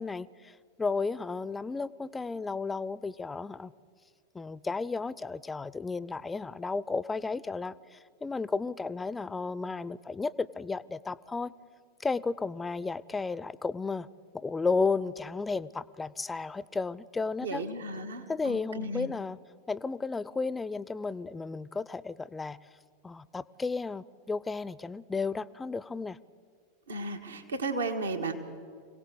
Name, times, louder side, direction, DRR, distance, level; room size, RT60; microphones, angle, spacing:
voice 1, 0.0-3.7 4.3-11.5 12.0-14.1 14.3-17.6 18.3-19.4 19.7-22.6 23.0-26.2, left 4 dB, 15° left, 19 dB, 0.5 m, -33 dB
voice 2, 17.4-19.1 26.9-28.3, right 2 dB, 80° right, 5 dB, 1.6 m, -34 dB
26.0 x 17.5 x 6.8 m, 2.1 s
figure-of-eight pair, 90°, 0 cm